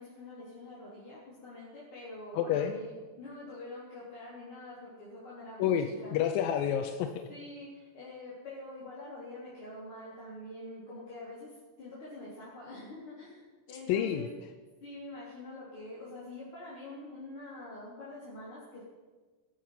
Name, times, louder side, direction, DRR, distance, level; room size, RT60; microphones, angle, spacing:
voice 1, 0.0-2.9 3.2-6.1 7.3-14.3 14.8-18.8, left 1 dB, 40° left, -8 dB, 4.5 m, -45 dB
voice 2, 2.3-2.7 5.6-7.2 13.9-14.3, left 9 dB, 90° left, 7 dB, 2.6 m, -29 dB
18.5 x 12.5 x 6.0 m, 1.3 s
omnidirectional pair, 3.9 m